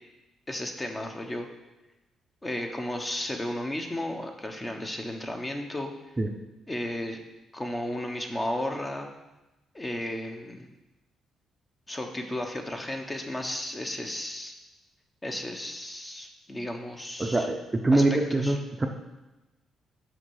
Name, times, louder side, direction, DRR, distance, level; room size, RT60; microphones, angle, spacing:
voice 1, 0.5-1.5 2.4-5.9 6.7-7.2 7.5-9.1 9.7-10.7 11.9-14.5 15.2-17.5 17.9-18.6, left 1 dB, 20° left, 3 dB, 1.1 m, -34 dB
voice 2, 17.2-18.9, right 2 dB, 20° right, 3 dB, 0.7 m, -24 dB
6.0 x 5.2 x 6.4 m, 1.0 s
cardioid pair, 90°, 0 cm